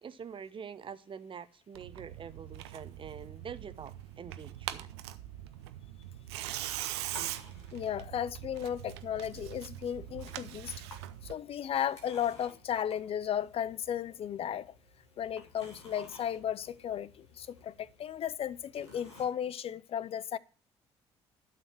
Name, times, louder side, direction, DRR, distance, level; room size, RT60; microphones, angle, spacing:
voice 1, 0.0-4.9, right 7 dB, 35° right, 0.9 m, -45 dB
Tearing, 1.7-11.3, right 13 dB, 70° right, 0.7 m, -42 dB
sound 1, 6.6-19.2, left 2 dB, 85° left, 2.4 m, -55 dB
voice 2, 7.7-10.7 11.2-14.7 15.2-20.4, left 9 dB, 45° left, 0.6 m, -35 dB
12.0 x 6.8 x 6.0 m
figure-of-eight pair, 50°, 14 cm